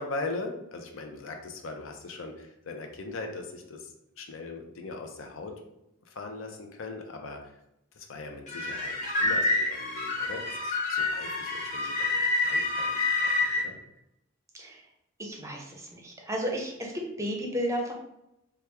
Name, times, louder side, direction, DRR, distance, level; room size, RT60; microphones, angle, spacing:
voice 1, 0.0-5.6 6.1-7.5 8.0-13.8, left 3 dB, 70° left, 3 dB, 0.5 m, -40 dB
sound 1, 8.5-13.6, left 2 dB, 40° left, 0.8 m, -28 dB
voice 2, 15.2-15.6 15.9-16.7 17.2-17.9, equal, 15° right, 0 dB, 0.5 m, -32 dB
3.0 x 2.3 x 3.3 m, 0.84 s
head